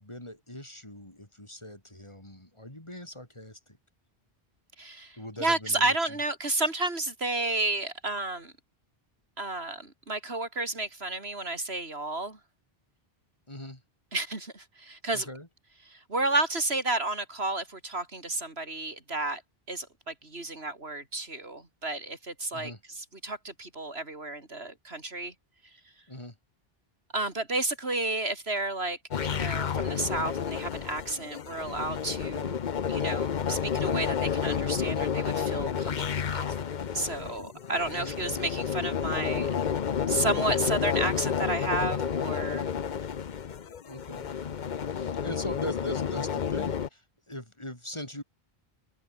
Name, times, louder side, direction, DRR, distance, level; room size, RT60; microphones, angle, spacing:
voice 1, 0.0-3.8 5.2-6.2 13.5-13.8 15.1-15.5 22.5-22.8 26.1-26.4 37.9-38.1 43.9-44.3 44.9-48.2, left 1 dB, 30° left, 4.6 m, -41 dB
voice 2, 4.8-8.5 9.4-12.4 14.1-15.3 15.9-19.4 19.7-25.3 27.1-32.6 32.9-36.5 36.9-39.5 40.1-42.7, right 2 dB, 90° right, 4.3 m, -32 dB
sound 1, 29.1-46.9, left 7 dB, 50° left, 0.9 m, -30 dB
omnidirectional pair, 1.0 m